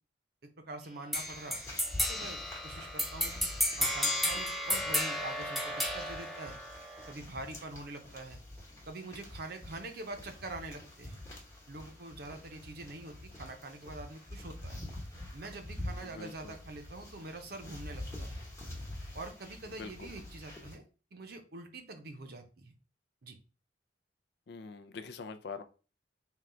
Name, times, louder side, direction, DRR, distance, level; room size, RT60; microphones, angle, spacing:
voice 1, 0.6-1.6 2.1-3.5 3.8-6.6 7.1-8.4 8.9-11.2 11.7-14.8 15.3-18.4 19.1-20.8 21.1-22.7 23.2-23.4, right 2 dB, 60° right, 5 dB, 0.7 m, -45 dB
sound 1, 1.1-20.8, left 1 dB, 15° left, 1.0 m, -46 dB
sound 2, 1.1-7.1, left 1 dB, ahead, 0.6 m, -33 dB
voice 2, 16.0-16.6 19.8-20.1 24.5-25.6, left 4 dB, 65° left, 9 dB, 0.4 m, -44 dB
3.8 x 2.3 x 4.3 m, 0.36 s
head